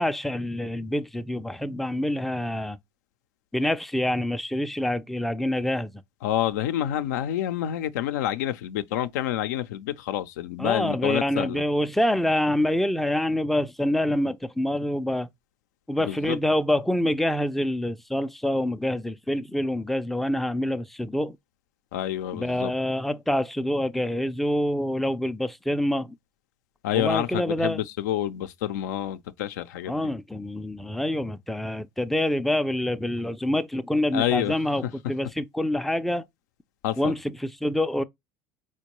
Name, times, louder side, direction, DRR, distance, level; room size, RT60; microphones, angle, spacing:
voice 1, 0.0-2.8 3.5-5.9 10.6-15.3 15.9-21.4 22.3-26.1 26.9-27.8 29.9-36.2 37.0-38.0, left 1 dB, ahead, 0.3 m, -26 dB
voice 2, 6.2-11.6 16.0-16.4 21.9-22.7 26.8-30.1 34.1-34.6 36.8-37.2, left 12 dB, 85° left, 0.4 m, -28 dB
4.4 x 2.2 x 2.9 m
supercardioid pair, 90°, 9 cm